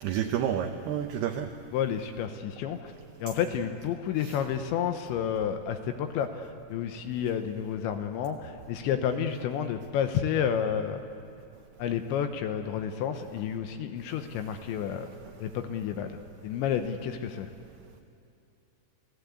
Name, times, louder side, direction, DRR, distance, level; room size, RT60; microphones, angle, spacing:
voice 1, 0.0-1.5 4.2-4.4, right 9 dB, 85° right, 6 dB, 2.3 m, -30 dB
voice 2, 1.7-2.9 3.2-11.0 11.8-15.1 15.4-17.5, left 8 dB, 75° left, 7 dB, 2.9 m, -30 dB
29.0 x 17.0 x 8.3 m, 2.7 s
omnidirectional pair, 5.9 m